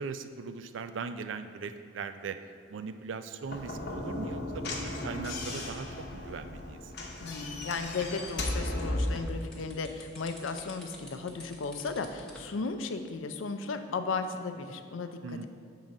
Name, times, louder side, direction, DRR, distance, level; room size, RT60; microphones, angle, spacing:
voice 1, 0.0-2.4 2.7-6.9 15.2-15.5, right 5 dB, 75° right, 10 dB, 0.4 m, -39 dB
Slam / Knock, 3.4-9.3, left 1 dB, 55° left, 0.9 m, -35 dB
voice 2, 7.2-15.2, left 4 dB, 85° left, 8 dB, 0.5 m, -35 dB
sound 1, 7.5-12.5, left 1 dB, 5° left, 0.8 m, -49 dB
7.3 x 3.8 x 5.2 m, 2.4 s
head